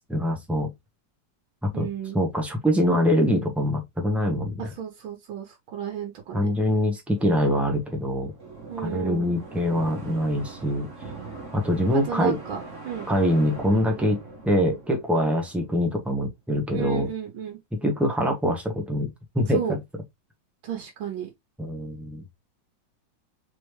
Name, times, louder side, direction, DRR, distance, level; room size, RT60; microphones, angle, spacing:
voice 1, 0.1-0.7 1.6-1.9 2.1-4.7 6.3-8.3 8.8-10.9 11.5-12.4 13.1-14.2 14.4-17.1 17.8-19.1 19.3-19.8 21.6-22.2, equal, ahead, 0.6 m, -24 dB
voice 2, 1.7-2.2 4.6-6.5 8.7-9.4 12.1-12.6 12.9-13.1 16.7-17.6 19.5-19.8 20.6-21.3, right 8 dB, 85° right, 1.8 m, -33 dB
sound 1, 7.2-16.0, right 3 dB, 40° right, 1.5 m, -41 dB
4.0 x 3.2 x 3.1 m
omnidirectional pair, 2.1 m